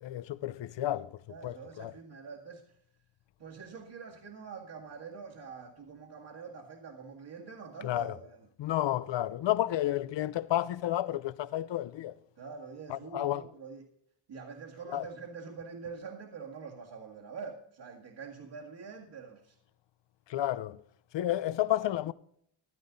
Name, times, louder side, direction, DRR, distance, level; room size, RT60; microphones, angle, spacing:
voice 1, 0.0-1.9 7.8-8.2 8.6-12.1 12.9-13.5 14.9-15.1 20.3-20.8 21.1-22.1, left 13 dB, 60° left, 0.7 m, -31 dB
voice 2, 1.3-2.6 3.4-8.4 12.4-13.8 14.3-19.5, right 5 dB, 50° right, 2.2 m, -45 dB
15.5 x 12.5 x 4.0 m
wide cardioid pair, 160°, 50 cm